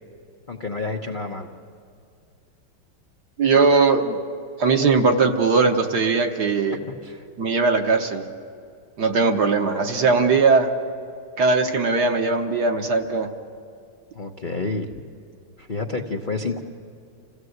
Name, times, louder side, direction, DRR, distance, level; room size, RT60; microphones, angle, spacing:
voice 1, 0.5-1.5 7.0-7.2 14.1-14.9 15.6-16.6, left 3 dB, 45° left, 2 dB, 0.6 m, -29 dB
voice 2, 3.4-4.2 4.6-6.8 7.4-8.2 9.0-10.7 11.4-13.3, right 4 dB, 55° right, 4 dB, 1.5 m, -19 dB
27.5 x 16.5 x 7.9 m, 2.4 s
omnidirectional pair, 2.4 m